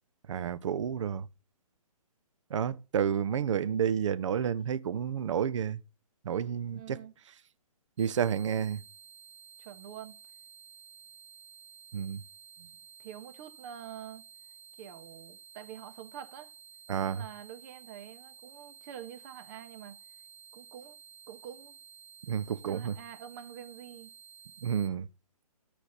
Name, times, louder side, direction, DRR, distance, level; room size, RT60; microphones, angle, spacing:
voice 1, 0.3-1.3 2.5-5.8 6.2-7.0 8.0-8.8 11.9-12.2 16.9-17.2 22.3-23.0 24.6-25.1, right 8 dB, 50° right, 0.9 m, -30 dB
voice 2, 6.7-7.1 9.6-10.2 13.0-14.3 14.8-16.5 17.0-20.0 20.5-21.0 21.3-21.8 22.7-24.1, right 9 dB, 30° right, 1.7 m, -46 dB
sound 1, 8.0-24.9, right 8 dB, 10° right, 1.0 m, -53 dB
13.5 x 5.2 x 8.3 m
figure-of-eight pair, 140°, 20 cm